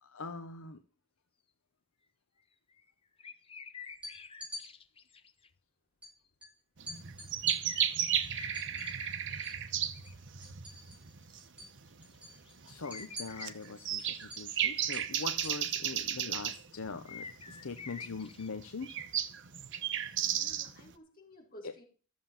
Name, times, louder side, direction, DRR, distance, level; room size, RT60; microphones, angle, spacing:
voice 1, 0.0-0.8 12.7-18.9, left 4 dB, 65° left, 9 dB, 0.8 m, -42 dB
sound 1, 2.7-2.9 3.2-5.5 6.1-6.2 7.6-10.2 11.2-11.4 11.8-12.2 12.5-14.8 17.1-18.9, left 5 dB, 25° left, 0.8 m, -48 dB
sound 2, 3.9-4.6 6.0-6.1 6.4-6.5 6.9-9.6 9.9-11.1 11.4-11.7 12.0-16.2, left 1 dB, 5° right, 5.5 m, -47 dB
sound 3, 6.8-20.9, right 10 dB, 55° right, 1.0 m, -35 dB
voice 2, 20.2-21.8, left 1 dB, 40° left, -1 dB, 4.9 m, -54 dB
13.0 x 7.3 x 7.2 m, 0.38 s
head